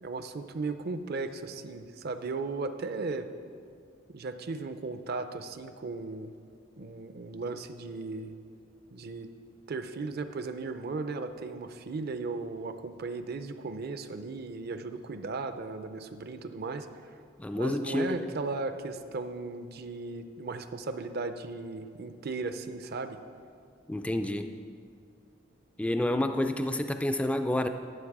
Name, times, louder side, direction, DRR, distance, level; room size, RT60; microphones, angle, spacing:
voice 1, 0.0-3.3 4.1-6.3 6.8-8.3 8.9-9.3 9.7-17.1 17.5-23.2, right 3 dB, 50° right, 9 dB, 0.5 m, -36 dB
voice 2, 17.4-18.3 23.9-24.6 25.8-27.7, left 1 dB, 5° left, 7 dB, 0.3 m, -29 dB
12.0 x 7.1 x 4.8 m, 2.3 s
head